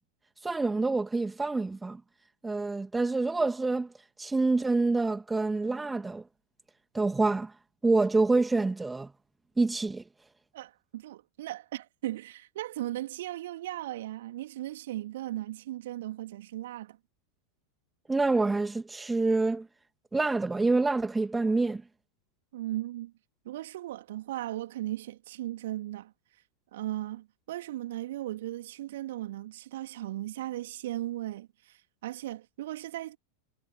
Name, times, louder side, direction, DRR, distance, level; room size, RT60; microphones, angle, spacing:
voice 1, 0.4-2.0 2.4-3.9 4.2-6.2 6.9-7.5 7.8-9.1 9.6-10.0 18.1-19.7 20.1-21.8, right 3 dB, 10° right, 2.2 m, -27 dB
voice 2, 10.5-17.0 22.5-23.1 23.4-26.1 26.7-33.2, right 14 dB, 55° right, 2.9 m, -37 dB
figure-of-eight pair, 90°, 0 cm